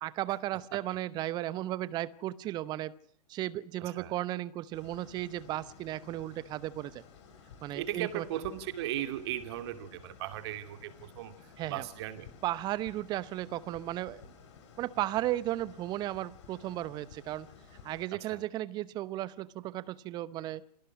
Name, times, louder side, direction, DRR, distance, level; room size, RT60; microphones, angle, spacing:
voice 1, 0.0-2.9 3.3-7.0 7.6-8.2 11.6-11.8 12.4-14.2 14.8-17.5 17.8-20.6, right 14 dB, 20° right, 19 dB, 0.8 m, -35 dB
sound 1, 4.7-18.1, left 6 dB, 45° left, 4.8 m, -54 dB
voice 2, 7.7-11.3 11.7-12.3 18.3-18.4, right 12 dB, 40° right, 9 dB, 2.7 m, -37 dB
28.0 x 17.5 x 6.3 m, 0.65 s
figure-of-eight pair, 115°, 21 cm